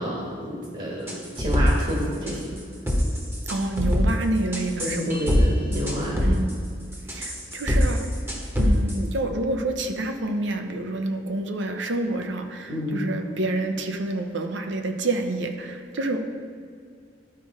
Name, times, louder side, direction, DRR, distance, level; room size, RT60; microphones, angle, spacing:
voice 1, 0.0-2.6 4.8-6.2 12.7-13.1, equal, 45° right, -3 dB, 1.4 m, -29 dB
sound 1, 1.1-1.9 2.3-2.6 2.9-4.1 4.5-5.5 5.7-6.5 6.9-9.0, equal, 15° right, 1.0 m, -23 dB
voice 2, 3.5-5.1 6.2-6.5 7.1-8.1 8.6-16.2, right 2 dB, 80° right, 5 dB, 0.7 m, -28 dB
11.5 x 4.7 x 4.2 m, 2.3 s
head